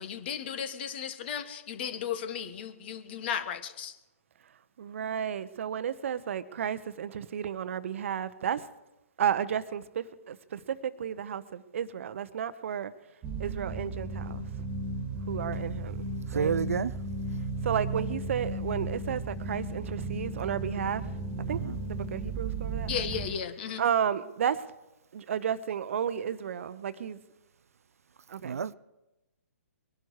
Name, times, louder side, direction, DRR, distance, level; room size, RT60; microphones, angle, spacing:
voice 1, 0.0-3.9 22.9-23.8, left 8 dB, 45° left, 1.4 m, -35 dB
voice 2, 4.8-8.7 9.2-12.9 13.4-14.6 15.3-16.5 17.6-21.0 21.5-21.6 21.8-22.9 23.8-24.7 25.1-27.2 28.3-28.6, right 8 dB, 55° right, 0.9 m, -32 dB
sound 1, 13.2-23.3, right 2 dB, 20° right, 2.0 m, -35 dB
voice 3, 16.3-16.9 21.5-21.8 28.4-28.7, right 6 dB, 75° right, 0.5 m, -29 dB
22.5 x 11.5 x 4.8 m
hypercardioid pair, 135°, 8 cm